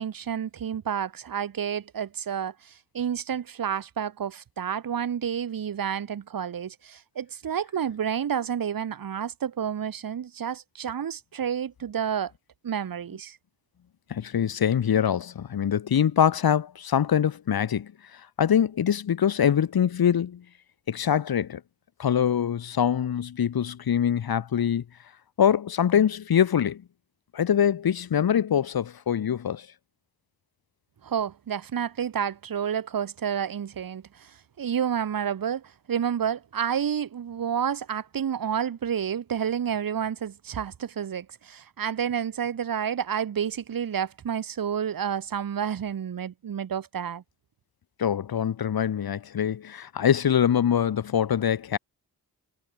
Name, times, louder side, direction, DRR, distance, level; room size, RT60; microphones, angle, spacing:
voice 1, 0.0-2.5 2.9-12.3 12.6-13.4 31.0-34.3 34.6-47.2, right 8 dB, 65° right, 1.5 m, -30 dB
voice 2, 14.1-17.9 18.4-20.4 20.9-21.6 22.0-24.8 25.4-26.8 27.3-29.7 48.0-51.8, left 9 dB, 70° left, 1.7 m, -24 dB
wide cardioid pair, 105°, 37 cm